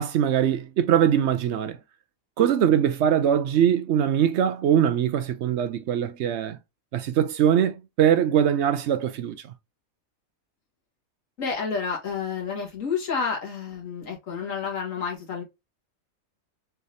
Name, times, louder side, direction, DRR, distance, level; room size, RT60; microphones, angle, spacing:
voice 1, 0.0-1.8 2.4-6.6 6.9-9.5, right 9 dB, 65° right, 0.7 m, -22 dB
voice 2, 11.4-15.4, left 5 dB, 65° left, 2.0 m, -30 dB
4.5 x 3.3 x 2.6 m
omnidirectional pair, 1.5 m